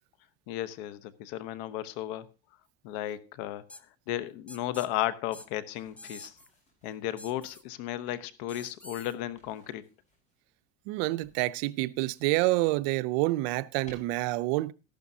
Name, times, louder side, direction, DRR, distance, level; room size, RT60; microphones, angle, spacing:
voice 1, 0.5-2.3 2.8-3.8 4.1-6.4 6.8-9.8, left 13 dB, 75° left, 1.0 m, -34 dB
sound 1, 3.7-3.8 4.5-4.9 5.3-5.5 6.0-6.5 7.2-7.6 8.5-9.1, left 1 dB, 5° left, 0.5 m, -47 dB
sound 2, 5.7-7.7 9.1-10.4 11.2-12.5 12.9-14.0, left 1 dB, 25° left, 5.1 m, -61 dB
voice 2, 10.9-14.7, right 19 dB, 80° right, 0.6 m, -28 dB
13.5 x 11.5 x 2.8 m
cardioid pair, 140°, 29 cm